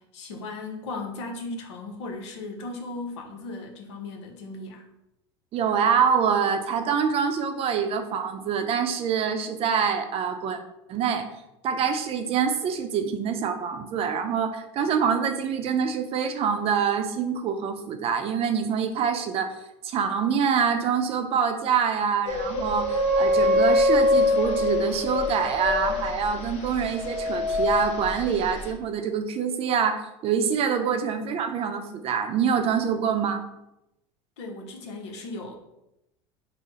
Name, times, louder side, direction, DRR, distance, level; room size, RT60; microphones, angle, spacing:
voice 1, 0.0-4.8 30.8-30.9 34.4-35.5, left 2 dB, 85° left, 3 dB, 0.7 m, -37 dB
voice 2, 5.5-10.6 10.9-11.3 11.6-19.5 19.8-33.4, right 7 dB, 45° right, 6 dB, 0.5 m, -25 dB
sound 1, 22.3-28.7, left 1 dB, 50° left, 0.7 m, -24 dB
3.9 x 2.1 x 4.1 m, 0.87 s
hypercardioid pair, 95°, 14 cm